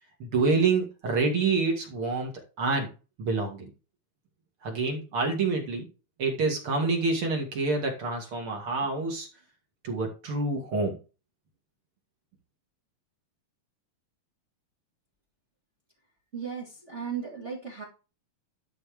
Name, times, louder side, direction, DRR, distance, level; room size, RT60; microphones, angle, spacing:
voice 1, 0.2-2.9 3.2-3.7 4.6-5.9 6.2-9.3 9.8-10.9, right 3 dB, 45° right, 1 dB, 2.4 m, -27 dB
voice 2, 16.3-17.8, right 6 dB, 30° right, -1 dB, 1.6 m, -36 dB
11.5 x 4.3 x 4.9 m, 0.32 s
omnidirectional pair, 3.8 m